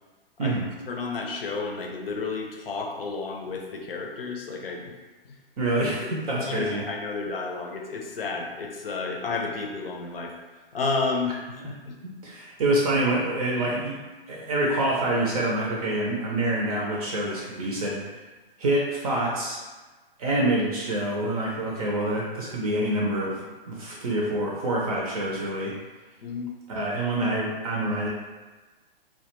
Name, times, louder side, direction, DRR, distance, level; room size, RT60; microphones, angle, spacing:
voice 1, 0.9-4.9 5.2-5.4 6.0-10.3 10.7-12.0 26.2-26.5, left 4 dB, 75° left, 1 dB, 0.6 m, -31 dB
voice 2, 5.6-6.8 12.0-14.0 14.3-18.0 18.6-19.6 20.2-25.7 26.7-28.1, right 1 dB, 40° right, -3 dB, 0.5 m, -26 dB
2.2 x 2.2 x 2.9 m, 1.2 s
hypercardioid pair, 130°, 30 cm